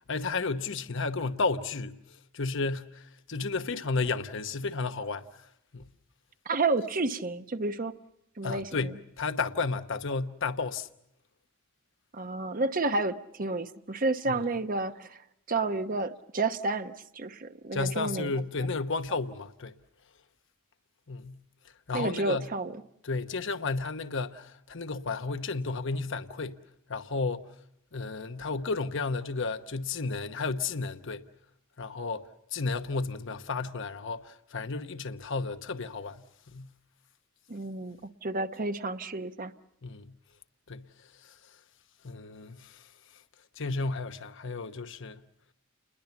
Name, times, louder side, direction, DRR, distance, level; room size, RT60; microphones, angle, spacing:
voice 1, 0.1-5.9 8.4-10.9 14.3-14.5 17.7-19.7 21.1-21.4 21.9-22.5 23.0-26.6 26.9-27.5 27.9-31.3 31.8-36.3 36.5-36.7 39.8-40.1 40.7-40.9 41.2-41.4 42.0-42.9 43.6-45.2, left 4 dB, 65° left, 1.1 m, -33 dB
voice 2, 6.4-7.9 8.4-8.9 12.1-15.2 15.5-18.3 21.9-22.7 37.5-39.5, right 3 dB, 45° right, 1.0 m, -30 dB
29.5 x 21.5 x 7.1 m
head